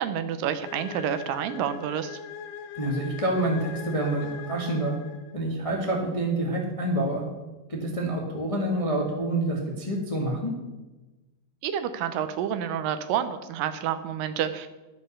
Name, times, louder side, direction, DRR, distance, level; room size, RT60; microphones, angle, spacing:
voice 1, 0.0-2.2 11.6-14.7, right 9 dB, 80° right, 10 dB, 2.4 m, -29 dB
sound 1, 0.6-5.5, left 7 dB, 70° left, 2.5 m, -41 dB
voice 2, 2.7-4.9 5.3-7.2 7.7-10.5, right 1 dB, 20° left, -1 dB, 0.9 m, -27 dB
12.0 x 7.6 x 6.7 m, 1.1 s
omnidirectional pair, 4.0 m